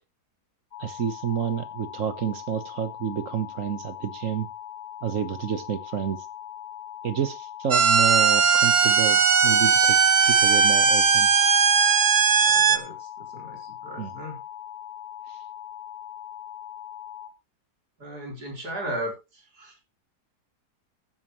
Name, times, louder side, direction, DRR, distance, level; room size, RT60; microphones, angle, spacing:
sound 1, 0.7-17.3, left 10 dB, 80° left, 2.0 m, -40 dB
voice 1, 0.8-4.5 5.0-6.2 7.0-11.3 14.0-14.1, right 7 dB, 55° right, 11 dB, 1.5 m, -29 dB
sound 2, 7.7-12.8, right 5 dB, 40° right, 0.7 m, -18 dB
voice 2, 12.4-14.4 18.0-19.8, right 1 dB, 75° right, 0 dB, 4.6 m, -36 dB
15.0 x 9.0 x 3.1 m, 0.26 s
omnidirectional pair, 1.7 m